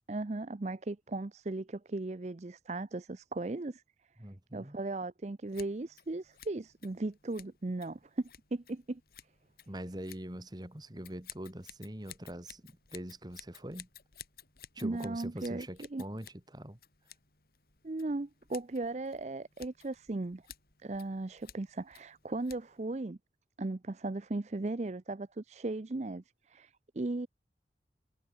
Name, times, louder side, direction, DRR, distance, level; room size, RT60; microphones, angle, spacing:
voice 1, 0.1-3.8 4.5-9.0 14.8-16.0 17.8-20.4 20.8-23.2 23.6-27.3, right 2 dB, 40° right, 0.5 m, -37 dB
voice 2, 4.2-4.8 9.7-13.9 14.7-16.8, right 1 dB, 25° right, 2.0 m, -43 dB
Scissors, 5.5-23.0, left 11 dB, 55° left, 4.9 m, -56 dB
head